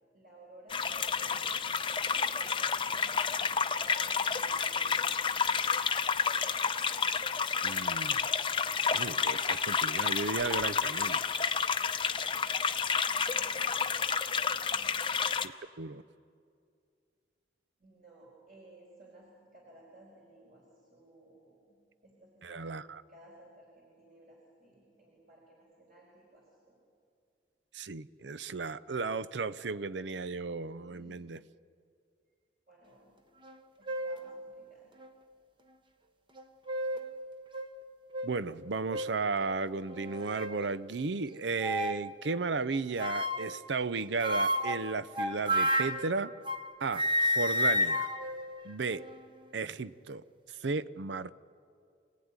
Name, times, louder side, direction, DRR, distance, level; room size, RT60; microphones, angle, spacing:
voice 1, 0.1-1.4 2.0-5.1 13.1-13.8 14.5-14.9 17.8-20.6 20.9-21.8 22.0-22.7 23.1-26.8 30.9-31.2 32.7-33.2 33.8-34.9, right 1 dB, 50° right, -3 dB, 4.7 m, -57 dB
sound 1, 0.7-15.5, left 6 dB, 30° left, 0.7 m, -30 dB
voice 2, 7.6-8.3 8.7-11.2 15.4-16.0 22.4-23.0 27.7-31.4 38.2-46.3 46.8-48.1 48.6-49.0 49.5-50.2 50.5-51.3, right 4 dB, 75° right, 16 dB, 0.6 m, -34 dB
sound 2, 33.4-33.5 33.9-34.3 35.0-35.1 36.4-37.1 37.5-37.7 38.1-38.3 38.9-39.2 39.9-40.6 41.6-42.0 43.0-43.6 44.2-46.7 46.9-49.3, left 1 dB, 25° right, 1.0 m, -31 dB
27.0 x 17.0 x 9.6 m, 2.4 s
head